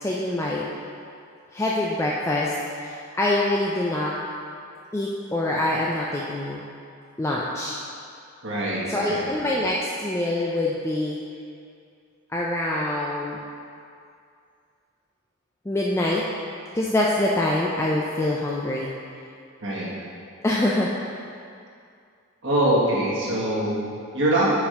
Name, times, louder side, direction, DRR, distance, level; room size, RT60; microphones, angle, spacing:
voice 1, 0.0-0.6 1.5-4.1 4.9-6.6 7.2-7.8 8.9-11.2 12.3-13.4 15.7-16.2 16.7-18.9 20.4-20.9, left 1 dB, 10° left, -4 dB, 0.3 m, -25 dB
voice 2, 8.4-9.3 19.6-19.9 22.4-24.5, right 1 dB, 60° right, -6 dB, 1.5 m, -23 dB
5.2 x 4.8 x 5.0 m, 2.4 s
head